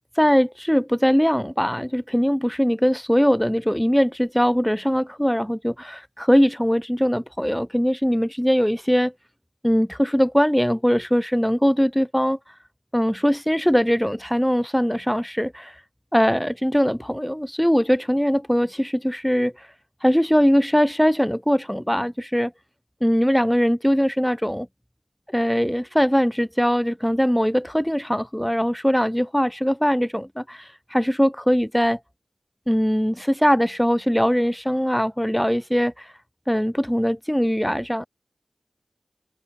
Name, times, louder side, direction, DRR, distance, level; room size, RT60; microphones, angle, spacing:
voice 1, 0.2-9.1 9.6-12.4 12.9-15.8 16.1-19.7 20.0-22.5 23.0-24.7 25.3-32.0 32.7-36.1 36.5-38.1, equal, 5° left, 0.3 m, -21 dB
cardioid pair, 45°, 0 cm